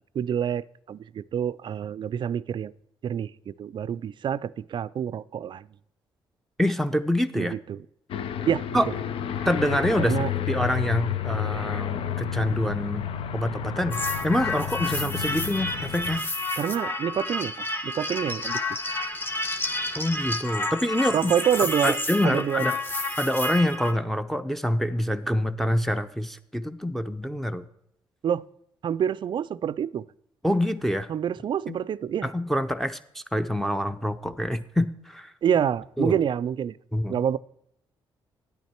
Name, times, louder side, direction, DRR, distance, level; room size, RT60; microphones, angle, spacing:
voice 1, 0.2-2.7 3.0-5.7 7.3-7.8 8.4-8.7 10.1-10.3 16.6-17.5 17.8-18.6 21.1-22.0 22.2-22.6 28.2-28.4 28.8-30.0 31.1-32.3 35.4-36.8 37.1-37.4, right 9 dB, 55° right, 19 dB, 0.4 m, -27 dB
voice 2, 6.6-7.5 8.7-8.9 9.4-13.0 13.3-16.2 20.0-21.3 21.6-22.8 23.2-27.6 30.4-31.1 31.7-31.8 32.2-35.3 36.0-36.2 36.9-37.2, equal, 5° left, 6 dB, 0.7 m, -26 dB
Aircraft, 8.1-16.2, left 9 dB, 75° left, 0.6 m, -31 dB
newageisz tadeusz maszewski, 13.9-23.9, left 2 dB, 20° left, 1.3 m, -30 dB
10.0 x 9.1 x 4.4 m, 0.76 s
supercardioid pair, 60°, 9 cm